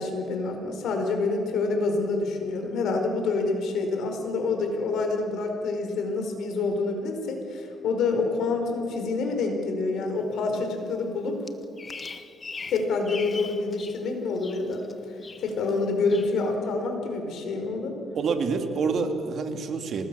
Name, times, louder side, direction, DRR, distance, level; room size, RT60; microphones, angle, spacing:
voice 1, 0.0-11.4 12.7-14.8 15.4-18.0, left 3 dB, 75° left, 4 dB, 4.9 m, -27 dB
Bird vocalization bird call bird song, 11.5-14.0 14.3-14.9 15.2-15.7 16.1-16.3, left 4 dB, 35° left, 1.5 m, -40 dB
voice 2, 18.1-20.1, right 5 dB, 60° right, 5 dB, 2.7 m, -27 dB
27.5 x 19.5 x 7.1 m, 2.6 s
cardioid pair, 90°, 0 cm